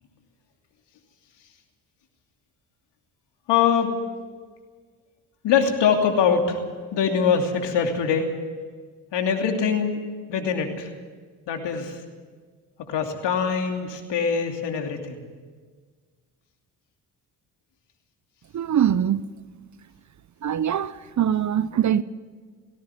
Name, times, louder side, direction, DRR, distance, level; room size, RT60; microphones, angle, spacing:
voice 1, 3.5-4.0 5.4-6.6 6.9-8.3 9.1-10.0 10.3-10.9 11.5-12.0 12.9-15.2, left 6 dB, 65° left, 2.9 m, -23 dB
voice 2, 18.5-19.2 20.4-22.0, right 9 dB, 40° right, 0.8 m, -22 dB
18.5 x 16.5 x 9.3 m
hypercardioid pair, 50°, 45 cm